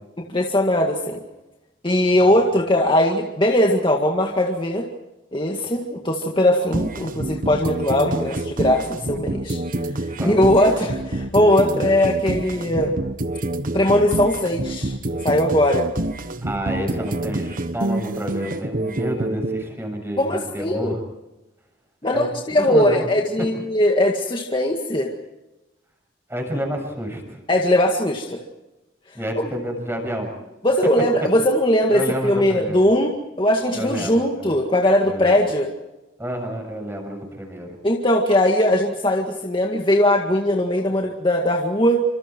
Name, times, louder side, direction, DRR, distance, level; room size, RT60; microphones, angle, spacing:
voice 1, 0.3-1.2 1.8-4.9 5.3-9.6 10.0-13.0 13.7-14.9 15.2-15.9 20.2-20.9 22.0-25.1 27.5-28.4 30.6-35.7 37.8-42.0, left 1 dB, 25° left, 1 dB, 2.0 m, -20 dB
sound 1, 6.7-19.6, right 1 dB, 45° right, 1.3 m, -27 dB
voice 2, 10.1-10.5 16.4-21.0 22.0-22.3 22.6-23.1 26.3-27.4 29.1-30.3 31.9-32.8 33.7-34.6 35.0-35.5 36.2-37.8, equal, 15° right, 3 dB, 7.1 m, -29 dB
29.5 x 25.5 x 4.6 m, 1.0 s
head